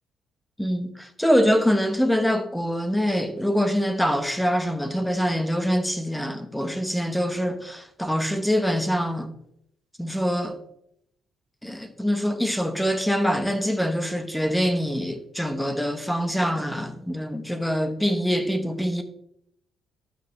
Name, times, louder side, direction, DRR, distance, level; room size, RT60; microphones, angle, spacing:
voice 1, 0.6-9.3 10.0-10.6 11.6-19.0, equal, 5° left, 1.0 m, -24 dB
11.5 x 7.0 x 3.2 m
cardioid pair, 120°, 0 cm